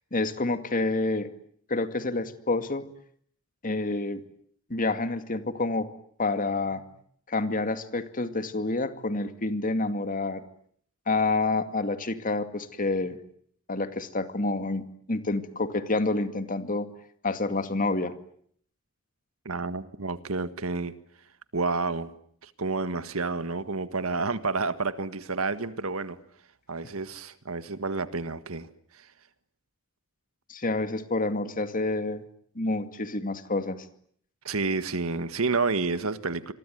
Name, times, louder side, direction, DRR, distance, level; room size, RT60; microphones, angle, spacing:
voice 1, 0.1-1.3 1.7-2.9 3.6-4.2 4.7-5.9 6.2-6.9 7.3-10.4 11.1-13.2 13.7-14.8 15.1-16.9 17.2-18.1 30.5-32.2 32.6-33.9, left 2 dB, 40° left, 9 dB, 2.3 m, -28 dB
voice 2, 19.5-20.9 21.5-22.1 22.4-26.2 26.7-29.1 34.4-36.5, right 3 dB, 85° right, 12 dB, 1.8 m, -30 dB
27.5 x 23.0 x 9.4 m, 0.64 s
head